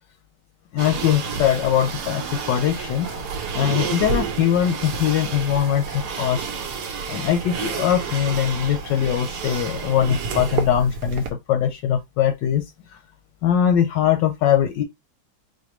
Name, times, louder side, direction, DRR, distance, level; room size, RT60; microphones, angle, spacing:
voice 1, 0.7-2.2 2.5-3.2 3.5-6.5 7.1-12.6 13.4-14.8, left 9 dB, 75° left, 1.1 m, -21 dB
sound 1, 0.8-11.3, right 5 dB, 65° right, 1.2 m, -30 dB
4.3 x 2.5 x 3.0 m
omnidirectional pair, 2.2 m